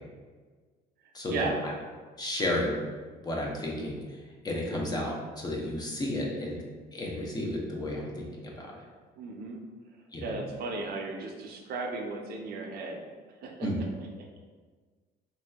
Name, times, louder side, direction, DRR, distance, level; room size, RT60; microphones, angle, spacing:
voice 1, 1.1-1.5 2.2-2.8 3.2-4.0 4.4-6.6 6.9-8.3 8.6-8.7 10.1-10.3 13.6-13.8, left 1 dB, 25° left, -2 dB, 0.6 m, -32 dB
voice 2, 9.2-9.6 10.2-13.1 13.4-13.7, right 3 dB, 65° right, 1 dB, 0.5 m, -35 dB
3.1 x 2.6 x 2.3 m, 1.4 s
cardioid pair, 110°, 17 cm